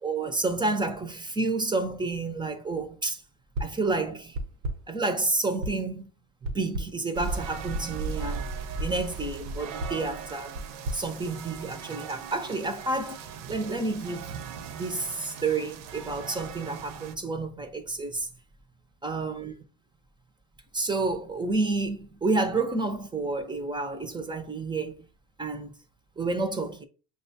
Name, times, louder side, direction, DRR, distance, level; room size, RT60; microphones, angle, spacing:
voice 1, 0.0-3.2 3.6-4.4 4.9-6.1 6.4-8.5 8.8-10.6 10.9-13.2 13.5-14.3 14.7-18.3 19.0-19.5 20.7-25.1 25.4-25.7 26.2-26.9, right 3 dB, 10° right, 0.5 m, -30 dB
sound 1, 3.5-3.9 4.3-5.0 5.6-6.0 6.4-7.1 7.7-8.0 8.5-9.0 9.8-11.9, right 1 dB, 85° right, 0.9 m, -36 dB
sound 2, 7.1-17.2, right 5 dB, 55° right, 0.7 m, -38 dB
5.9 x 2.2 x 2.7 m
supercardioid pair, 100°, 41 cm